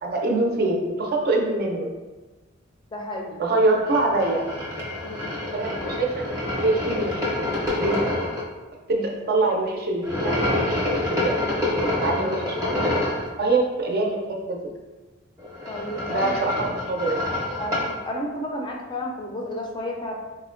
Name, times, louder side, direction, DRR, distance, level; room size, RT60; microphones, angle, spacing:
voice 1, 0.0-1.9 3.4-4.4 5.5-8.1 8.9-10.6 11.1-11.4 11.8-13.1 13.4-14.2 14.5-14.6 16.1-17.2, right 2 dB, 50° right, 0 dB, 0.5 m, -24 dB
voice 2, 2.9-3.4 5.0-5.3 15.7-16.4 17.6-20.1, left 1 dB, 25° left, 0 dB, 0.4 m, -32 dB
sound 1, 3.9-8.4 10.0-13.3 15.4-18.0, left 1 dB, 15° right, 0.7 m, -27 dB
4.1 x 2.1 x 2.4 m, 1.2 s
head